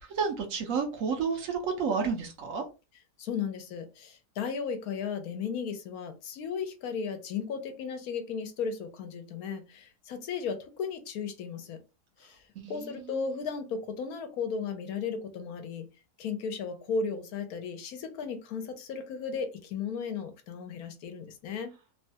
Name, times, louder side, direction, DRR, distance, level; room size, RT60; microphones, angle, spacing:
voice 1, 0.2-2.6 12.6-12.7 13.2-13.3, right 5 dB, 65° right, 1.0 m, -30 dB
voice 2, 3.2-11.8 12.2-15.9 16.2-21.7, left 6 dB, 75° left, 1.1 m, -35 dB
3.0 x 2.2 x 2.7 m
omnidirectional pair, 1.6 m